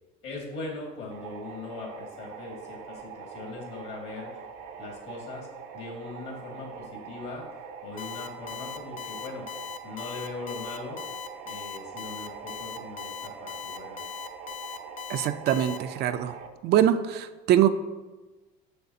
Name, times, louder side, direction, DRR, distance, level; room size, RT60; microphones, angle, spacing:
voice 1, 0.2-4.4 4.8-5.5 5.7-7.5 7.8-9.5 9.8-11.0 11.5-14.0, left 3 dB, 60° left, 0 dB, 2.1 m, -40 dB
sound 1, 1.1-16.5, right 6 dB, 85° right, 0.7 m, -43 dB
Alarm, 8.0-15.8, left 8 dB, 40° left, 0.6 m, -39 dB
voice 2, 15.1-16.3 16.6-17.7, right 11 dB, 55° right, 9 dB, 0.4 m, -23 dB
6.6 x 6.4 x 2.7 m, 1.2 s
supercardioid pair, 110°, 21 cm